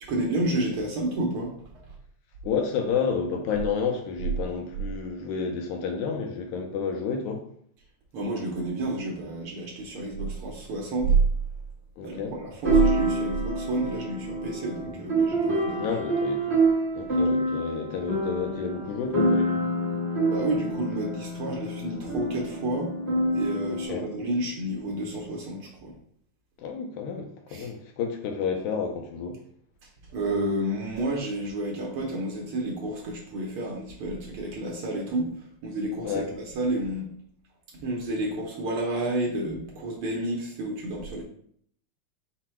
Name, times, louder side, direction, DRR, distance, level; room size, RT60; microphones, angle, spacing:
voice 1, 0.1-1.5 1.8-2.0 8.1-11.1 12.0-15.9 20.2-22.9 23.3-25.9 27.5-27.7 30.1-37.1 37.7-41.2, right 2 dB, 80° right, -2 dB, 1.2 m, -30 dB
voice 2, 2.4-7.4 12.0-12.3 15.8-16.7 17.0-19.6 23.9-24.1 26.6-29.4 36.0-36.3, left 5 dB, 85° left, 3 dB, 2.0 m, -30 dB
sound 1, 11.1-11.2 12.6-23.8, right 1 dB, 50° right, 0.7 m, -27 dB
5.9 x 2.1 x 4.3 m, 0.64 s
omnidirectional pair, 3.5 m